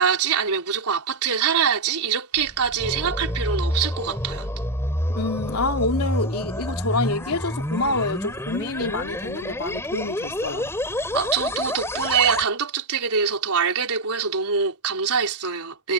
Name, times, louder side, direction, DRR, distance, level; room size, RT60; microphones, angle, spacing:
voice 1, 0.0-4.5 11.1-15.9, right 6 dB, 80° right, 4.1 m, -24 dB
sound 1, 2.3-12.4, left 1 dB, 10° left, 5.3 m, -28 dB
voice 2, 5.1-10.7, left 2 dB, 85° left, 2.9 m, -27 dB
head